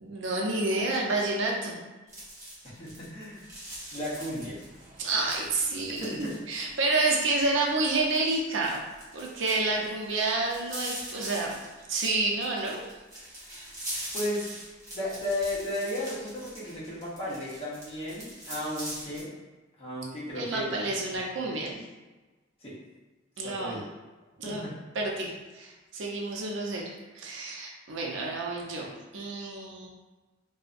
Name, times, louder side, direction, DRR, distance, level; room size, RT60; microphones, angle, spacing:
voice 1, 0.0-1.8 5.0-8.8 9.1-11.6 11.9-12.9 20.4-21.7 23.4-23.8 24.4-24.6 25.0-29.9, right 2 dB, 75° right, -1 dB, 0.5 m, -29 dB
sound 1, 2.1-19.2, right 1 dB, 15° right, 0.6 m, -43 dB
voice 2, 2.6-3.5 3.9-4.6 6.0-6.4 14.1-14.5 14.9-19.4 19.8-20.9 21.3-21.8 22.6-22.8 23.4-23.8 24.4-24.8, left 1 dB, 30° left, -7 dB, 0.7 m, -34 dB
2.6 x 2.1 x 2.4 m, 1.2 s
head